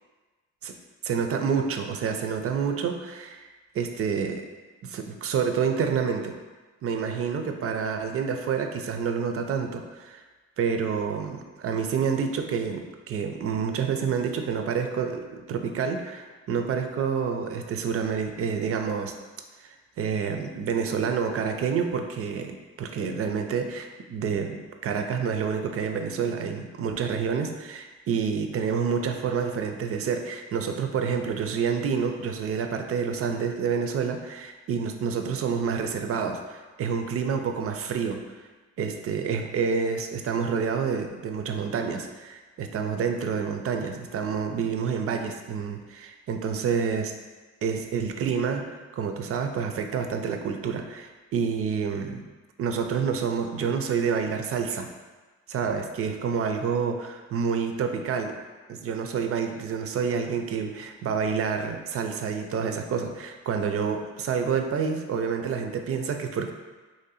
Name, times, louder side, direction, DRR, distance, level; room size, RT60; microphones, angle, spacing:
voice 1, 1.0-3.5 3.7-4.5 4.8-6.3 6.8-10.2 10.6-19.2 19.6-38.3 38.8-47.2 47.6-48.6 48.9-52.3 52.6-54.9 55.5-58.4 58.7-66.5, right 6 dB, 50° right, 5 dB, 0.5 m, -28 dB
3.1 x 2.7 x 4.1 m, 1.3 s
cardioid pair, 90°, 30 cm